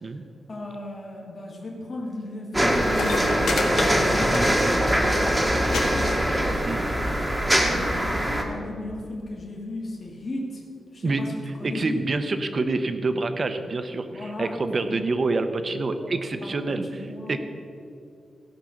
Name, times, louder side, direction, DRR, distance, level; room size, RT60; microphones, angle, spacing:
voice 1, 0.5-6.2 7.4-10.6 10.9-11.3 11.6-12.0 14.1-14.9 15.7-16.1 16.4-17.4, left 1 dB, 35° left, -2 dB, 1.7 m, -36 dB
sound 1, 2.5-8.4, equal, 5° right, 1.1 m, -22 dB
sound 2, 2.9-4.8 5.1-5.4 5.7-5.8 6.1-6.6 7.4-7.5, left 3 dB, 70° left, 1.6 m, -29 dB
voice 2, 11.0-11.4 11.6-17.4, right 3 dB, 35° right, 9 dB, 0.7 m, -27 dB
16.5 x 5.8 x 6.3 m, 2.6 s
wide cardioid pair, 175°, 0 cm